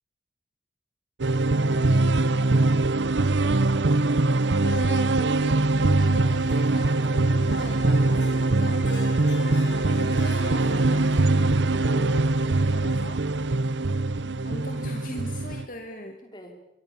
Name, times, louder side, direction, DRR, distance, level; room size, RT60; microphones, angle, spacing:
sound 1, 1.2-15.6, right 2 dB, 90° right, 0.9 m, -22 dB
voice 1, 1.4-1.9 2.3-4.0 16.2-16.5, equal, 25° left, 4 dB, 5.1 m, -49 dB
voice 2, 4.6-8.9 10.0-13.5 14.4-16.2, left 1 dB, 50° left, 4 dB, 2.5 m, -41 dB
Harp, 6.3-12.7, left 2 dB, 85° left, 5.1 m, -42 dB
27.0 x 24.5 x 7.2 m, 0.83 s
head